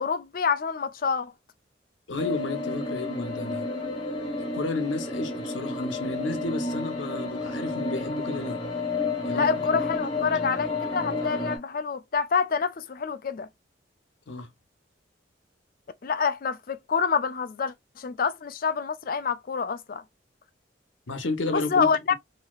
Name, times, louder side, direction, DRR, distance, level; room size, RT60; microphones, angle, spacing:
voice 1, 0.0-1.3 9.3-13.5 16.0-20.0 21.5-22.1, left 5 dB, 50° left, 0.4 m, -27 dB
voice 2, 2.1-3.7 4.5-8.6 9.2-10.0 14.3-14.5 21.1-22.1, left 2 dB, 90° left, 0.9 m, -32 dB
sound 1, 2.2-11.6, left 3 dB, 25° left, 1.0 m, -31 dB
3.1 x 2.8 x 2.3 m
head